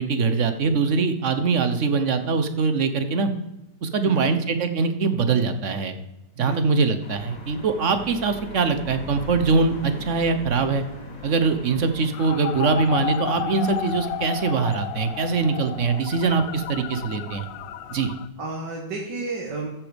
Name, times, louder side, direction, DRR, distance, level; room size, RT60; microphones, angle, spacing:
voice 1, 0.0-3.3 3.8-5.9 6.4-10.8 11.2-17.4 17.9-18.1, right 4 dB, 50° right, 9 dB, 1.1 m, -23 dB
voice 2, 4.0-4.4 6.4-6.8 18.4-19.7, right 3 dB, 75° right, -2 dB, 2.3 m, -32 dB
sound 1, 7.0-18.1, left 2 dB, 50° left, 2.3 m, -42 dB
sound 2, 12.1-18.3, left 11 dB, 80° left, 1.2 m, -32 dB
14.5 x 6.1 x 5.1 m, 0.95 s
omnidirectional pair, 1.9 m